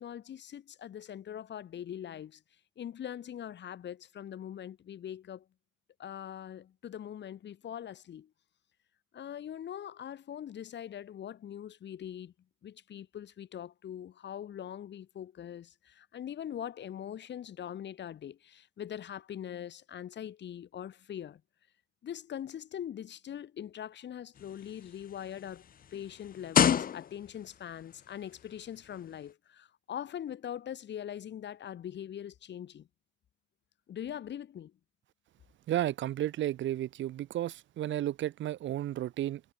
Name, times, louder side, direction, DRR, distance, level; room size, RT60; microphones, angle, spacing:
voice 1, 0.0-2.4 2.8-5.4 6.0-8.3 9.1-12.3 12.6-21.4 22.0-32.9 33.9-34.7, left 10 dB, 65° left, 3.2 m, -42 dB
sound 1, 24.4-27.5 28.4-28.5, left 8 dB, 45° left, 0.8 m, -29 dB
voice 2, 35.7-39.4, right 13 dB, 70° right, 0.9 m, -33 dB
cardioid pair, 90°, 20 cm